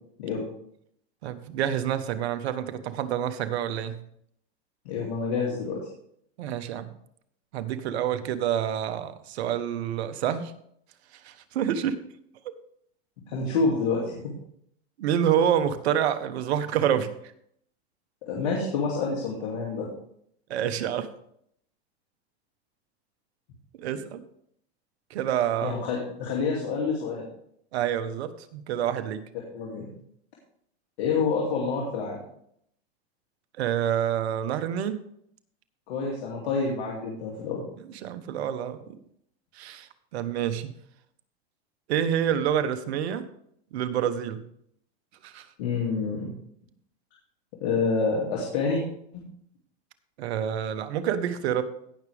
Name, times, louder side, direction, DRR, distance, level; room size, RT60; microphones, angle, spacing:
voice 1, 1.2-4.0 6.4-6.9 7.5-10.5 11.2-12.0 15.0-17.1 20.5-21.1 23.8-24.2 25.1-25.8 27.7-29.2 33.6-35.0 38.0-38.8 39.5-40.7 41.9-43.2 43.7-44.4 45.2-45.5 50.2-51.6, right 9 dB, 75° right, 11 dB, 1.3 m, -27 dB
voice 2, 4.8-5.8 13.3-14.3 18.2-19.9 25.6-27.3 29.5-29.9 31.0-32.2 35.9-37.6 45.6-46.3 47.6-48.8, left 4 dB, 75° left, -3 dB, 2.7 m, -27 dB
17.0 x 6.2 x 3.5 m, 0.69 s
supercardioid pair, 120°, 32 cm